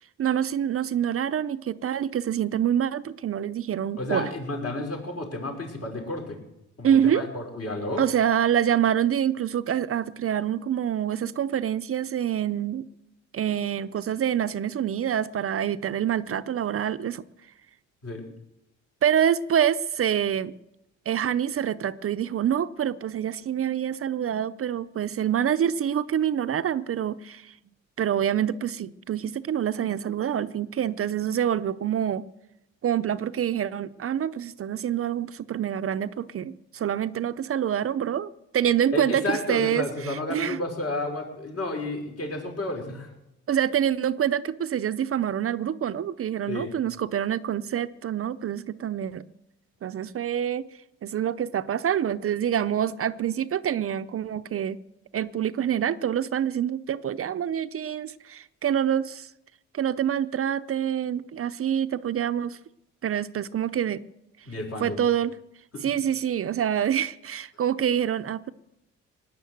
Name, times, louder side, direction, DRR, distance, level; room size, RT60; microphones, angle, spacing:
voice 1, 0.2-4.3 6.8-7.2 8.0-12.9 13.3-17.2 19.0-20.5 21.1-27.5 28.0-32.2 32.8-40.6 43.5-49.2 49.8-50.7 51.0-54.8 55.1-59.3 59.7-62.6 63.0-64.0 64.8-65.3 65.8-68.5, right 9 dB, 50° right, 0.6 m, -26 dB
voice 2, 4.0-6.4 6.8-8.1 18.0-18.2 38.9-43.1 46.5-46.7 64.5-65.0 65.7-65.8, left 1 dB, 50° left, 5.5 m, -31 dB
19.0 x 9.8 x 7.8 m
cardioid pair, 90°, 30 cm